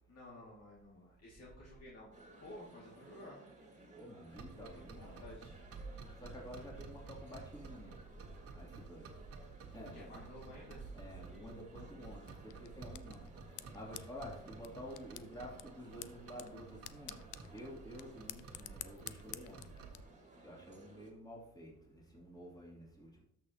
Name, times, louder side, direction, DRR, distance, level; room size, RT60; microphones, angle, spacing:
voice 1, 0.1-3.4 4.6-5.6 9.9-10.9, left 1 dB, 55° left, -5 dB, 2.4 m, -53 dB
sound 1, 2.1-21.1, right 2 dB, 25° right, 2.1 m, -59 dB
voice 2, 4.0-5.2 6.2-8.0 8.5-9.0 9.7-10.1 10.9-13.3 13.7-17.2 17.5-19.6 20.4-23.2, equal, 15° left, -3 dB, 2.9 m, -50 dB
sound 2, 4.3-20.1, right 4 dB, 50° right, 1.4 m, -52 dB
sound 3, 12.2-20.0, left 14 dB, 80° left, 0.5 m, -52 dB
13.0 x 6.2 x 2.9 m, 0.73 s
cardioid pair, 90°, 30 cm